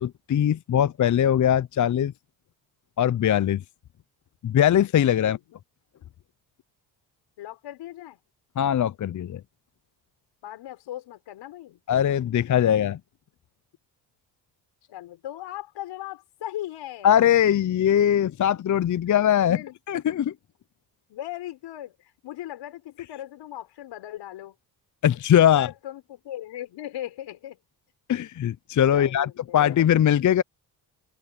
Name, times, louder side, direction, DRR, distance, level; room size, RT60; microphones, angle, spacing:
voice 1, 0.0-2.1 3.0-3.6 4.4-5.4 8.6-9.4 11.9-13.0 17.0-19.6 19.9-20.3 25.0-25.7 28.1-30.4, left 10 dB, 45° left, 0.7 m, -21 dB
voice 2, 5.2-5.6 7.4-8.2 10.4-11.8 14.9-17.2 19.4-19.8 21.1-24.5 25.5-27.6 28.9-29.8, left 13 dB, 80° left, 5.7 m, -38 dB
open air
supercardioid pair, 65°, 43 cm